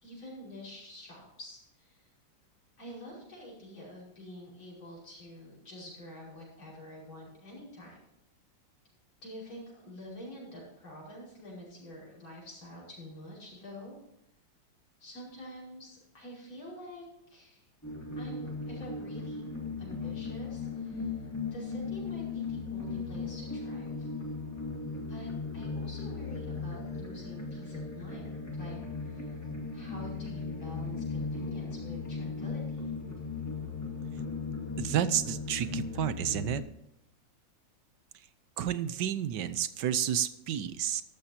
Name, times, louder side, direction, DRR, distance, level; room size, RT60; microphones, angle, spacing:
voice 1, 0.0-2.1 2.8-8.0 9.2-14.0 15.0-17.6 18.2-19.4 19.8-21.1 21.5-24.1 25.1-28.8 29.1-29.3 29.7-32.9, equal, 85° left, -5 dB, 6.2 m, -47 dB
sound 1, 17.8-36.6, left 4 dB, 10° left, 1.9 m, -37 dB
voice 2, 34.8-36.6 38.6-41.0, right 10 dB, 70° right, 13 dB, 1.4 m, -31 dB
13.5 x 12.5 x 2.8 m, 0.84 s
omnidirectional pair, 2.1 m